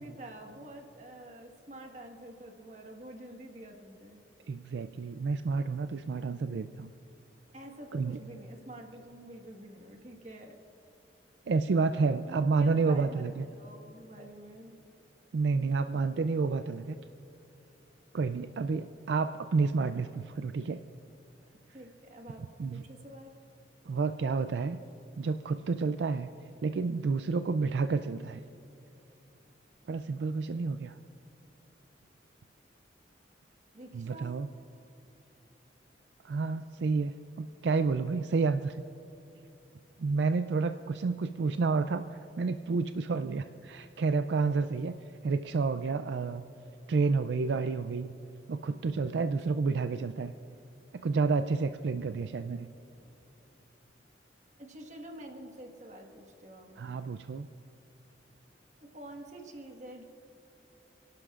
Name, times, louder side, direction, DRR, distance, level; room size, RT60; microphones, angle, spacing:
voice 1, 0.0-4.2 7.5-10.6 12.3-14.8 21.7-22.4 22.7-23.4 33.7-34.4 52.9-53.1 54.6-56.8 58.8-60.0, right 1 dB, 40° right, 2 dB, 1.5 m, -47 dB
voice 2, 4.5-6.9 7.9-8.2 11.5-13.5 15.3-17.0 18.1-20.8 22.6-22.8 23.9-24.8 25.2-26.3 26.6-28.4 29.9-31.0 33.9-34.5 36.2-38.8 40.0-44.9 45.2-46.5 46.9-48.2 48.5-50.3 50.9-52.7 56.8-57.5, right 4 dB, 70° right, 9 dB, 0.4 m, -30 dB
28.0 x 11.5 x 2.5 m, 2.8 s
head